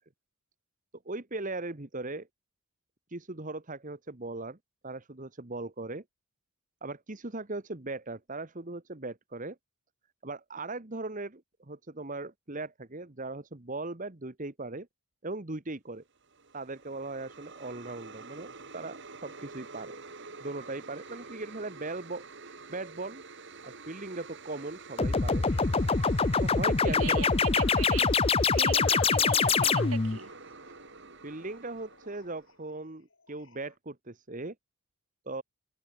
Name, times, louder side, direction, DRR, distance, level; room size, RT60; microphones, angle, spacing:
voice 1, 1.0-2.3 3.1-4.6 4.8-6.0 6.8-9.6 10.2-14.9 15.2-16.0 16.5-20.0 20.4-23.2 23.6-25.4 26.4-27.4 31.2-34.5 35.3-35.4, right 2 dB, 35° right, 1.4 m, -39 dB
sound 1, 16.2-32.6, right 4 dB, 55° right, 2.8 m, -48 dB
sound 2, 25.0-30.2, left 4 dB, 25° left, 0.6 m, -25 dB
sound 3, 25.5-33.7, left 5 dB, 60° left, 6.9 m, -52 dB
voice 2, 26.8-30.3, right 5 dB, 75° right, 7.6 m, -39 dB
open air
head